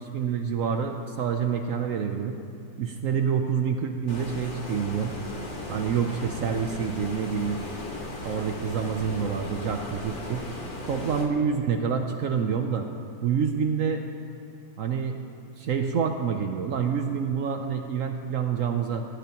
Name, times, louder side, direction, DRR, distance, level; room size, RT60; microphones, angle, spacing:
voice 1, 0.0-2.4 2.8-5.1 5.7-7.6 8.2-10.4 10.9-12.9 13.2-14.0 14.8-15.2 15.6-19.1, right 6 dB, 85° right, 5 dB, 0.7 m, -27 dB
Stream, 4.1-11.3, left 1 dB, 30° left, 1.4 m, -37 dB
18.5 x 14.5 x 3.0 m, 2.4 s
omnidirectional pair, 2.2 m